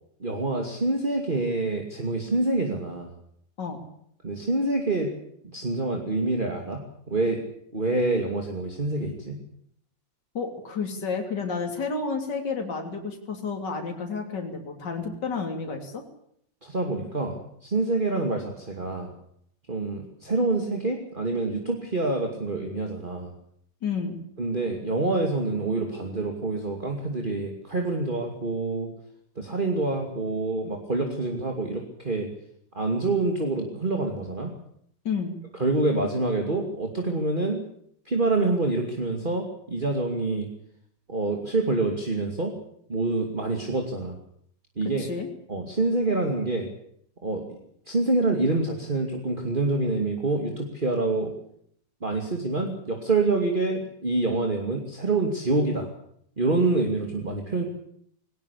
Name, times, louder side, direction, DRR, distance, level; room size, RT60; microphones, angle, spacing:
voice 1, 0.2-3.1 4.2-5.1 5.4-7.4 7.7-9.4 16.6-19.1 19.7-23.3 24.4-28.9 29.4-32.3 32.7-34.5 35.6-37.6 38.0-40.5 41.1-42.5 42.9-44.2 44.8-45.1 45.5-46.7 47.2-47.6 47.9-51.3 52.0-55.9 56.4-57.6, right 2 dB, 25° right, 3 dB, 2.7 m, -26 dB
voice 2, 10.4-16.0 23.8-24.2 35.1-35.3 45.0-45.3, left 5 dB, 65° left, 3 dB, 3.6 m, -31 dB
19.5 x 19.0 x 8.4 m, 0.69 s
omnidirectional pair, 2.1 m